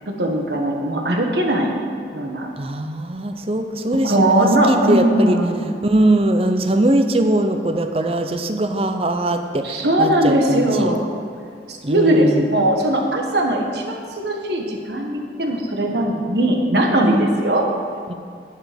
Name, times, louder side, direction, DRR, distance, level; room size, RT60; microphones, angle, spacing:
voice 1, 0.1-1.8 2.1-2.5 4.0-5.7 9.6-11.0 11.7-17.2 17.4-17.6, right 1 dB, 70° right, 2 dB, 1.5 m, -19 dB
voice 2, 2.6-5.4 5.8-10.9 11.8-12.5 17.0-17.3 18.1-18.2, right 1 dB, 35° right, 7 dB, 0.7 m, -21 dB
11.0 x 9.2 x 5.3 m, 2.2 s
head